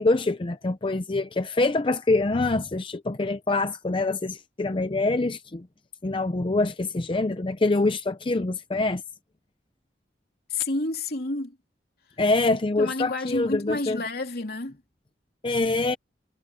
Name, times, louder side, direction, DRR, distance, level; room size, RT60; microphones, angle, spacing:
voice 1, 0.0-5.7 6.0-9.0 12.2-14.0 15.4-16.0, left 2 dB, 30° left, 0.6 m, -25 dB
voice 2, 10.5-11.6 12.8-14.8, left 2 dB, 60° left, 3.2 m, -29 dB
head